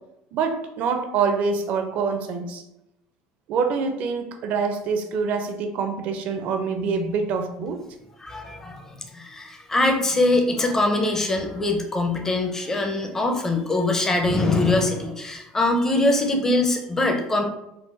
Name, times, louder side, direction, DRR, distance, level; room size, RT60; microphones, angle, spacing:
voice 1, 0.3-2.6 3.5-7.8, right 5 dB, 55° right, 6 dB, 0.4 m, -25 dB
voice 2, 8.2-17.4, left 2 dB, 15° left, 3 dB, 0.5 m, -23 dB
3.8 x 2.2 x 2.5 m, 0.86 s
supercardioid pair, 115°, 3 cm